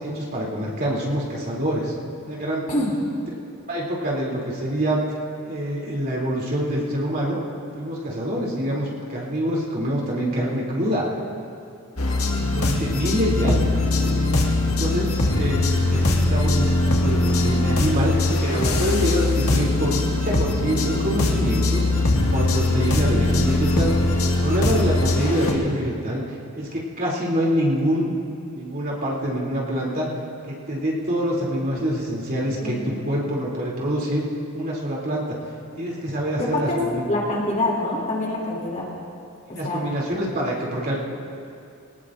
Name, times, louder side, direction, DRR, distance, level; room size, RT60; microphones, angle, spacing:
voice 1, 0.0-1.9 2.2-2.7 3.7-5.0 5.4-7.4 7.8-11.1 12.4-13.7 14.0-14.2 14.6-18.1 18.4-21.8 22.3-23.9 24.2-28.1 28.5-30.1 30.5-34.3 34.5-35.3 35.8-37.0 39.5-40.9, equal, 45° right, -4 dB, 3.0 m, -25 dB
sound 1, 12.0-25.5, left 2 dB, 90° left, 1.7 m, -21 dB
voice 2, 19.2-19.6 32.6-33.0 36.4-36.8 37.1-38.9 39.5-39.8, left 1 dB, 35° left, -4 dB, 3.0 m, -26 dB
23.5 x 18.5 x 2.6 m, 2.5 s
head